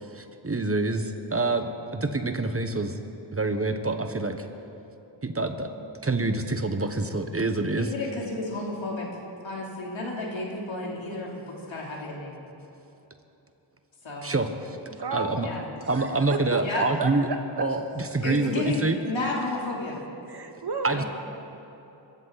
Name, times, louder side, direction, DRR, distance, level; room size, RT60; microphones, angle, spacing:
voice 1, 0.1-2.9 3.3-4.5 5.2-7.9 14.2-14.8 15.1-15.5 15.9-17.3 17.6-19.0 20.8-21.0, right 2 dB, 30° right, 7 dB, 1.2 m, -27 dB
voice 2, 7.7-9.1 9.4-12.4 14.0-14.3 15.4-15.6 16.6-16.8 18.2-20.0 20.9-21.1, left 2 dB, 80° left, -2 dB, 3.5 m, -32 dB
voice 3, 14.9-15.5 15.8-17.7 20.3-21.0, right 4 dB, 60° right, 5 dB, 1.7 m, -33 dB
24.5 x 14.0 x 4.2 m, 3.0 s
cardioid pair, 60°, 46 cm